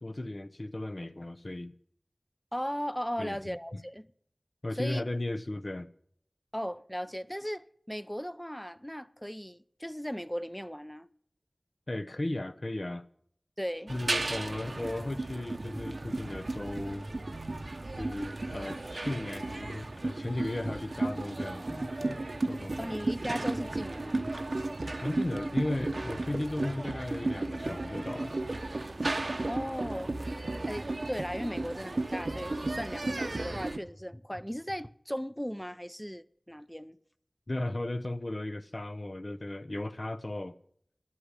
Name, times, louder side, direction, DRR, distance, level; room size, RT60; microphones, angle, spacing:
voice 1, 0.0-1.7 3.2-3.8 4.6-5.9 11.9-13.1 13.9-17.1 18.0-22.9 25.0-28.3 37.5-40.5, left 1 dB, 55° left, 0.7 m, -36 dB
voice 2, 2.5-4.1 4.7-5.0 6.5-11.1 13.6-13.9 22.8-24.3 29.5-30.2 30.7-37.0, equal, 5° left, 0.5 m, -37 dB
sound 1, 13.9-33.8, right 2 dB, 75° right, 0.7 m, -34 dB
11.0 x 8.5 x 8.2 m
wide cardioid pair, 50°, 0 cm